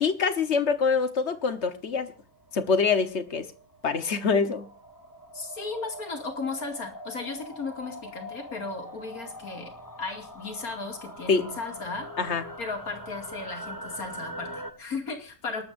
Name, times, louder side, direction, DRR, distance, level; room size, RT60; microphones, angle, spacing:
voice 1, 0.0-2.1 2.5-3.5 3.8-4.7 11.3-11.4 12.2-12.4, left 5 dB, 50° left, 1.4 m, -25 dB
sound 1, 1.9-14.7, equal, 15° left, 1.3 m, -43 dB
voice 2, 5.3-9.7 10.0-12.1 12.6-15.6, left 4 dB, 80° left, 3.0 m, -35 dB
28.0 x 13.0 x 2.6 m
omnidirectional pair, 1.5 m